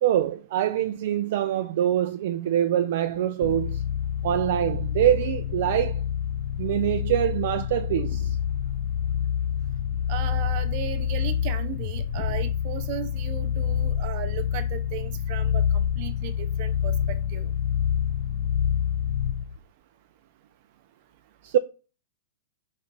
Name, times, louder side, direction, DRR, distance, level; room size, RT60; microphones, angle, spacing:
voice 1, 0.0-3.8 4.2-6.0 6.6-8.4 21.4-21.6, right 11 dB, 55° right, 0.4 m, -24 dB
sound 1, 3.4-19.6, left 9 dB, 55° left, 0.4 m, -27 dB
voice 2, 10.1-17.5, right 11 dB, 40° right, 0.8 m, -36 dB
5.1 x 4.2 x 4.5 m
supercardioid pair, 160°, 0 cm